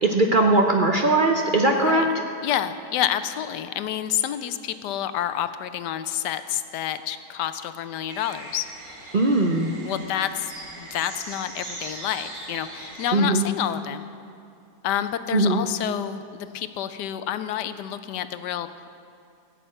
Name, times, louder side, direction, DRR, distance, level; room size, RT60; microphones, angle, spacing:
voice 1, 0.0-2.0 9.1-9.7 13.1-13.5 15.3-15.6, right 2 dB, 45° right, 2 dB, 0.6 m, -20 dB
voice 2, 1.6-2.1 2.4-8.7 9.8-10.5 10.8-14.1 14.8-18.9, left 11 dB, 80° left, 11 dB, 1.2 m, -29 dB
sound 1, 8.1-13.1, right 2 dB, 90° right, 2.9 m, -40 dB
15.0 x 7.0 x 8.7 m, 2.5 s
omnidirectional pair, 1.8 m